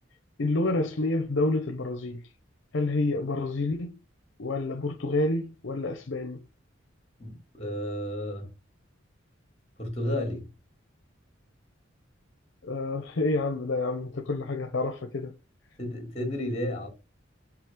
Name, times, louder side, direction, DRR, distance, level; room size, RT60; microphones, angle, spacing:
voice 1, 0.4-2.2 2.7-3.9 4.4-6.4 12.6-15.3, left 2 dB, 70° left, 0.8 m, -28 dB
voice 2, 7.2-8.5 9.8-10.5 15.8-16.9, left 1 dB, 30° left, 2.5 m, -32 dB
6.0 x 4.9 x 3.7 m
head